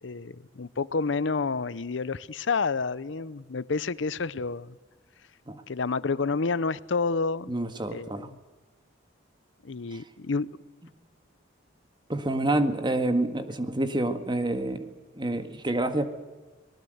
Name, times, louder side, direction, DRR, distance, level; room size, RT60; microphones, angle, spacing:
voice 1, 0.0-4.7 5.7-7.5 7.9-8.3 9.6-10.5, left 4 dB, 70° left, 18 dB, 0.7 m, -29 dB
voice 2, 7.5-8.3 9.9-10.0 12.1-16.1, right 1 dB, 25° right, 8 dB, 1.7 m, -28 dB
24.5 x 19.5 x 8.0 m, 1.3 s
head